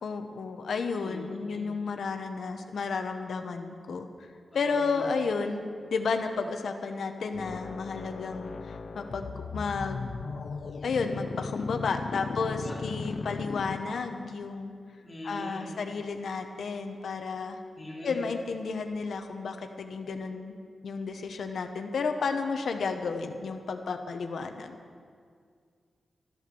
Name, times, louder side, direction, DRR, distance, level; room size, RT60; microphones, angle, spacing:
voice 1, 0.0-4.1 4.5-5.6 5.9-10.1 10.8-14.7 15.2-17.6 18.0-20.5 20.8-24.8, left 4 dB, 70° left, 6 dB, 1.0 m, -32 dB
voice 2, 4.7-5.1 12.3-12.7 15.0-15.7 17.8-18.2, left 1 dB, 15° left, -3 dB, 2.9 m, -41 dB
sound 1, 7.3-14.3, left 4 dB, 50° left, 0.6 m, -37 dB
13.5 x 11.5 x 6.9 m, 2.1 s
wide cardioid pair, 175°, 0 cm